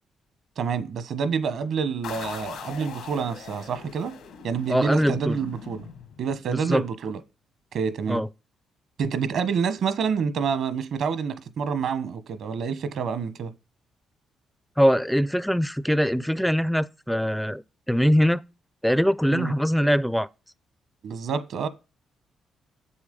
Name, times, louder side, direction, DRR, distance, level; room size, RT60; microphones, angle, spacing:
voice 1, 0.6-4.1 4.4-5.9 6.2-7.2 7.7-8.2 9.0-13.5 19.3-19.5 21.0-21.7, right 6 dB, 65° right, 1.1 m, -28 dB
sound 1, 2.0-6.6, left 7 dB, 85° left, 2.3 m, -41 dB
voice 2, 4.7-5.4 6.5-6.8 8.1-8.3 14.8-17.6 17.9-18.4 18.8-20.3, equal, ahead, 0.5 m, -22 dB
7.5 x 7.0 x 5.2 m
cardioid pair, 90°, 0 cm